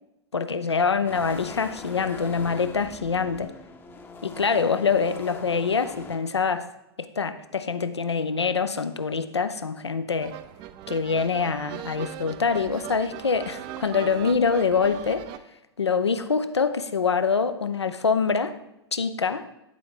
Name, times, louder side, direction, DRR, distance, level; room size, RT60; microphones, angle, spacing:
voice 1, 0.3-3.5 4.2-6.7 7.0-10.4 10.9-15.3 15.8-18.6 18.9-19.5, left 5 dB, 85° left, 11 dB, 0.5 m, -25 dB
sound 1, 1.1-6.2, left 4 dB, 15° left, 0.7 m, -42 dB
sound 2, 10.2-15.4, right 12 dB, 35° right, 0.4 m, -39 dB
10.5 x 4.6 x 3.8 m, 0.89 s
figure-of-eight pair, 100°, 14 cm